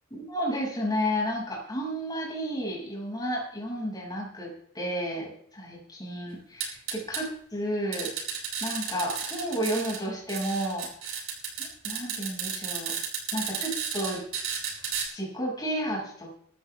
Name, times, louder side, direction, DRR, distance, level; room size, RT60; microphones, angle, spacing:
voice 1, 0.1-4.5 4.7-8.1 8.6-11.2 11.6-12.9 13.3-14.2 15.1-16.3, equal, 20° left, -2 dB, 6.5 m, -32 dB
sound 1, 6.6-7.2 7.9-10.0 10.3-15.0, right 7 dB, 90° right, 7.0 m, -33 dB
20.5 x 14.0 x 3.6 m, 0.63 s
head